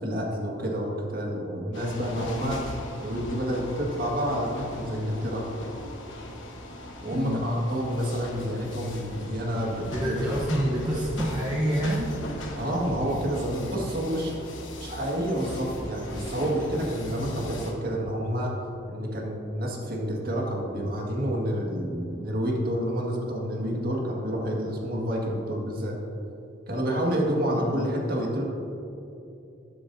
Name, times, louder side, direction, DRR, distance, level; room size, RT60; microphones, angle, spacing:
voice 1, 0.0-2.6 3.0-5.4 7.0-10.2 12.5-14.3 14.8-18.5 18.9-26.0 26.7-28.4, equal, 50° right, -1 dB, 1.8 m, -29 dB
sound 1, 1.7-17.7, left 1 dB, 70° left, 1.2 m, -38 dB
voice 2, 9.9-12.1 27.2-27.8, right 1 dB, 20° right, -4 dB, 0.9 m, -28 dB
11.5 x 11.5 x 2.7 m, 2.8 s
head